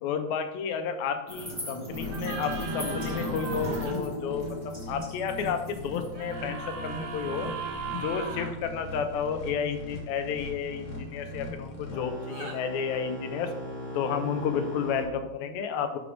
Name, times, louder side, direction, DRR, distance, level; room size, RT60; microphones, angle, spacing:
voice 1, 0.0-7.5 8.0-13.5 13.9-16.0, left 6 dB, 80° left, 7 dB, 1.8 m, -31 dB
sound 1, 1.3-7.8, left 1 dB, 15° right, 1.2 m, -39 dB
sound 2, 1.9-15.1, left 1 dB, 55° left, 1.6 m, -38 dB
sound 3, 2.1-3.9 6.1-8.5 12.2-12.6, right 5 dB, 75° right, 2.2 m, -38 dB
5.1 x 4.7 x 5.0 m, 0.93 s
omnidirectional pair, 3.5 m